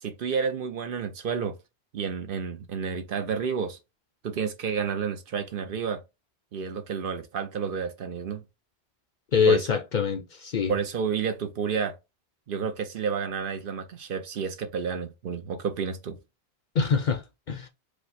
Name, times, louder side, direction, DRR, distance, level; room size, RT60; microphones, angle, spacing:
voice 1, 0.0-1.5 1.9-3.8 4.2-6.0 6.5-8.4 9.4-9.7 10.7-12.0 12.5-16.2, right 6 dB, 60° right, 0.8 m, -30 dB
voice 2, 9.3-10.7 16.7-17.7, left 6 dB, 55° left, 0.6 m, -24 dB
4.9 x 2.0 x 4.1 m
omnidirectional pair, 1.1 m